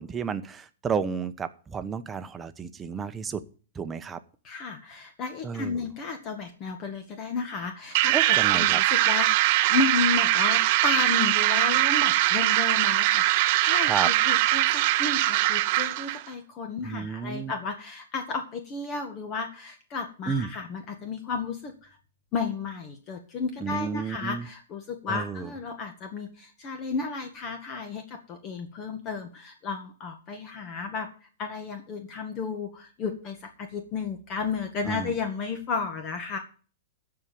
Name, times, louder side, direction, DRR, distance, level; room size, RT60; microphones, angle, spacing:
voice 1, 0.0-3.4 3.7-4.2 5.4-5.8 8.1-8.8 13.9-14.1 16.8-17.5 20.3-20.5 23.6-24.5 25.1-25.5 34.9-35.1, right 6 dB, 20° right, 10 dB, 1.0 m, -31 dB
voice 2, 4.4-22.0 22.3-36.4, left 4 dB, 35° left, 5 dB, 2.0 m, -33 dB
sound 1, 7.9-16.2, right 16 dB, 50° right, 0.7 m, -22 dB
14.0 x 4.9 x 8.8 m, 0.39 s
hypercardioid pair, 115°, 0 cm